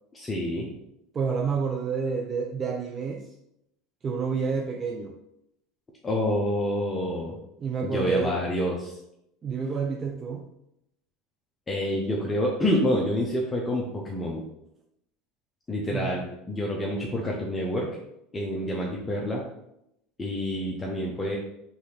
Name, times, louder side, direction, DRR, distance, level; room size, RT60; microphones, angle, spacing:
voice 1, 0.1-0.7 6.0-7.4 7.8-9.0 11.7-14.4 15.7-17.9 18.3-19.4 20.2-21.4, left 1 dB, 20° left, -2 dB, 0.7 m, -28 dB
voice 2, 1.1-3.3 4.0-5.2 7.6-8.4 9.4-10.5 15.9-16.3, right 5 dB, 30° right, 2 dB, 0.4 m, -29 dB
4.0 x 3.4 x 3.3 m, 0.80 s
supercardioid pair, 110°, 0 cm